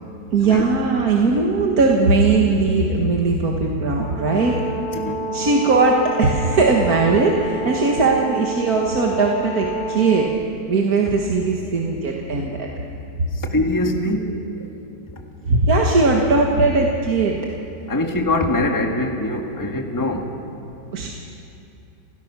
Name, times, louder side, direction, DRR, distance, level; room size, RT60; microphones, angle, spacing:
voice 1, 0.3-4.6 5.3-10.3 10.7-12.7 15.5-17.4 20.9-21.1, right 3 dB, 55° right, -1 dB, 2.0 m, -19 dB
Brass instrument, 4.0-10.3, right 2 dB, 35° left, 3.1 m, -29 dB
voice 2, 13.5-14.2 17.9-20.3, left 1 dB, 10° left, 2 dB, 1.6 m, -22 dB
30.0 x 17.0 x 6.1 m, 2.8 s
omnidirectional pair, 1.9 m